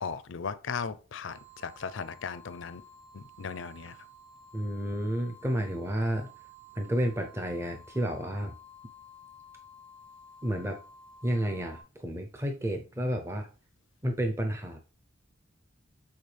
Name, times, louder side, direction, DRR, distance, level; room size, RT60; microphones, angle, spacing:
voice 1, 0.0-2.8 3.1-4.0, left 5 dB, 65° left, 0.5 m, -37 dB
sound 1, 1.2-11.8, left 1 dB, 60° right, 2.3 m, -53 dB
voice 2, 4.5-6.3 6.8-8.5 10.4-10.8 11.2-13.5 14.0-14.8, equal, 15° right, 0.6 m, -31 dB
7.9 x 4.2 x 3.3 m
head